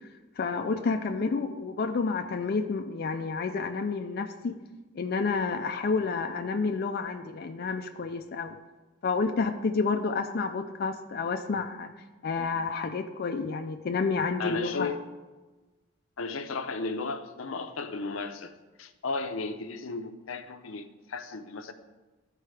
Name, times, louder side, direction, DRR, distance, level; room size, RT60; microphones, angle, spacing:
voice 1, 0.4-4.5 4.9-8.6 9.0-11.9 12.2-14.9, left 4 dB, 50° left, 5 dB, 0.4 m, -30 dB
voice 2, 14.4-15.0 16.2-18.5 18.8-21.7, left 3 dB, 85° left, 8 dB, 0.7 m, -34 dB
13.0 x 4.6 x 3.3 m, 1.2 s
head